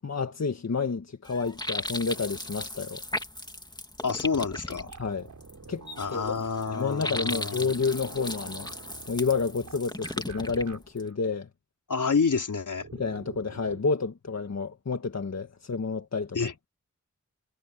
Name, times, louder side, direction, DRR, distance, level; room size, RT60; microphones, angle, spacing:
voice 1, 0.0-3.0 5.0-5.3 5.7-5.8 6.1-6.4 6.7-8.7 9.1-11.5 12.9-16.4, left 4 dB, 60° left, 1.7 m, -30 dB
sound 1, 1.2-11.1, left 1 dB, 15° left, 2.3 m, -37 dB
voice 2, 4.0-4.9 6.0-7.7 11.9-12.9 16.3-16.5, left 5 dB, 80° left, 4.1 m, -28 dB
sound 2, 4.8-10.8 11.0-11.1 12.8-13.8, right 5 dB, 80° right, 5.2 m, -47 dB
cardioid pair, 50°, 30 cm